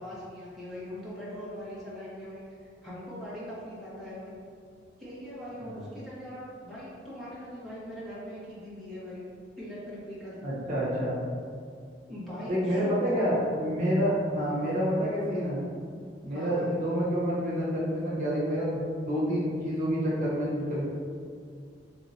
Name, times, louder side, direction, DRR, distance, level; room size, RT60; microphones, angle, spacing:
voice 1, 0.0-4.3 5.0-9.2 9.6-10.4 12.1-13.3 16.3-16.7, equal, ahead, -10 dB, 1.1 m, -41 dB
voice 2, 10.4-11.2 12.5-15.6 16.2-20.8, equal, 45° right, -7 dB, 1.0 m, -28 dB
3.6 x 2.9 x 4.0 m, 2.3 s
head